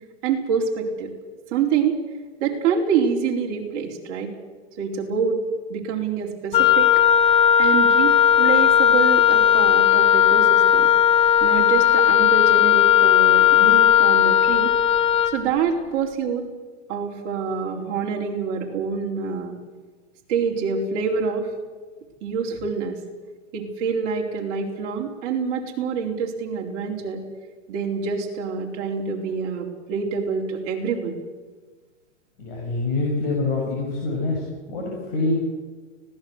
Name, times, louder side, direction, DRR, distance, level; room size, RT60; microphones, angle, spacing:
voice 1, 0.2-1.1 1.5-2.0 2.4-4.3 4.8-5.4 5.7-6.9 7.6-10.9 11.4-14.7 15.3-16.4 16.9-19.6 20.3-21.5 22.2-23.0 23.5-27.2 27.7-31.2, right 6 dB, 30° right, -1 dB, 4.2 m, -26 dB
Wind instrument woodwind instrument, 6.5-15.4, left 9 dB, 20° left, 1.1 m, -16 dB
voice 2, 32.4-35.3, left 2 dB, 45° left, -1 dB, 6.7 m, -25 dB
25.0 x 18.0 x 8.0 m, 1.3 s
hypercardioid pair, 165°, 36 cm